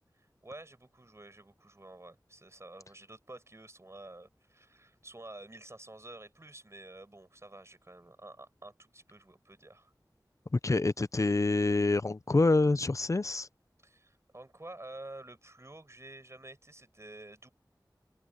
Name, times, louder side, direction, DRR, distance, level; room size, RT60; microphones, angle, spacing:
voice 1, 0.0-9.9 13.8-17.5, right 2 dB, 40° right, 6.5 m, -50 dB
voice 2, 10.6-13.5, left 3 dB, 45° left, 0.6 m, -26 dB
open air
wide cardioid pair, 60°, 8 cm